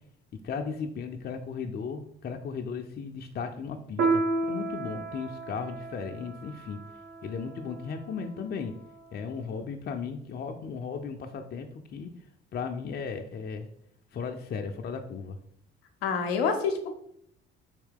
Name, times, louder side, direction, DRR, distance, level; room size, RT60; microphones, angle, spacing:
voice 1, 0.4-6.8 7.2-8.7 9.1-12.1 12.5-13.7 14.1-15.4, left 5 dB, 35° left, 4 dB, 0.4 m, -36 dB
Piano, 4.0-8.9, right 3 dB, 60° right, 0.8 m, -32 dB
voice 2, 16.0-16.9, left 5 dB, 85° left, 5 dB, 0.5 m, -27 dB
3.6 x 2.8 x 3.6 m, 0.69 s
hypercardioid pair, 50°, 30 cm